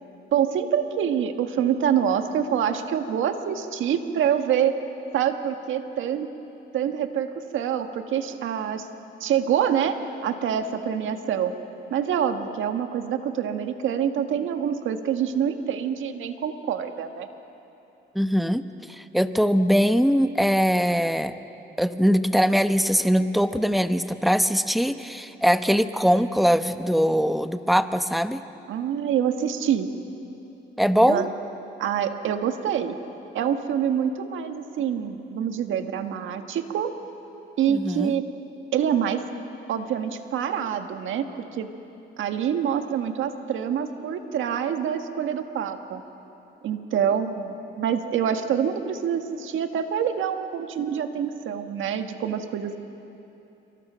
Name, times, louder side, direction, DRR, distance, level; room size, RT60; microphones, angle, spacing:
voice 1, 0.3-4.8 5.1-6.3 6.7-8.9 9.2-11.5 11.9-17.3 28.7-29.9 31.1-31.3 31.8-33.0 33.3-36.9 37.6-38.3 38.7-39.2 39.7-41.3 41.5-41.7 42.2-46.0 46.6-52.8, right 8 dB, 80° right, 7 dB, 1.6 m, -26 dB
voice 2, 18.1-18.6 18.9-21.4 21.8-28.4 30.8-31.2 37.7-38.1, equal, ahead, 10 dB, 1.0 m, -21 dB
27.5 x 24.5 x 6.3 m, 2.9 s
cardioid pair, 90°, 20 cm